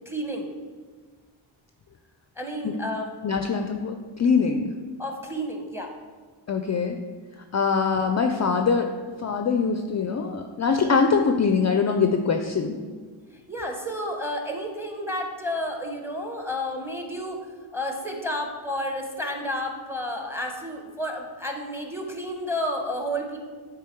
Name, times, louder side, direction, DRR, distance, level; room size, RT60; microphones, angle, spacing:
voice 1, 0.1-0.5 2.4-3.1 5.0-6.0 13.3-17.5 17.7-23.4, equal, 5° right, 2 dB, 0.9 m, -31 dB
voice 2, 3.2-4.7 6.5-7.0 7.5-8.9 9.2-12.8, left 5 dB, 35° left, 6 dB, 0.4 m, -23 dB
8.5 x 3.6 x 4.5 m, 1.5 s
cardioid pair, 100°, 49 cm